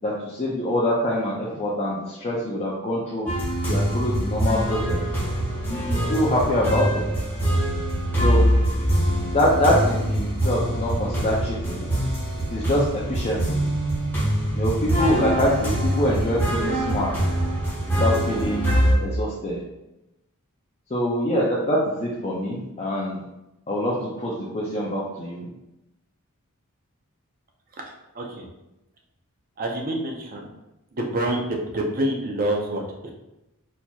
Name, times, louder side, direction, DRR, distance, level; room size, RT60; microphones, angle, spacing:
voice 1, 0.0-3.3 3.7-5.0 5.6-7.0 8.2-8.4 9.3-11.9 12.5-13.6 14.5-17.1 18.0-19.6 20.9-23.2 23.7-25.5, left 1 dB, 30° left, -5 dB, 0.4 m, -25 dB
sound 1, 3.3-18.9, equal, 10° left, 0.8 m, -24 dB
voice 2, 27.8-28.5 29.6-30.5 30.9-33.1, right 1 dB, 40° right, 0 dB, 0.6 m, -27 dB
4.3 x 2.8 x 2.3 m, 0.93 s
head